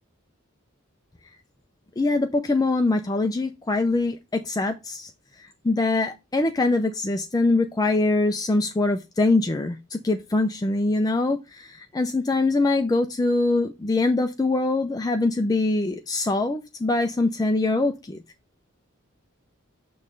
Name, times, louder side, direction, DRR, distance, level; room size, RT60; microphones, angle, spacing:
voice 1, 2.0-5.1 5.6-18.2, left 2 dB, 20° left, 0.4 m, -23 dB
6.4 x 3.1 x 5.1 m
head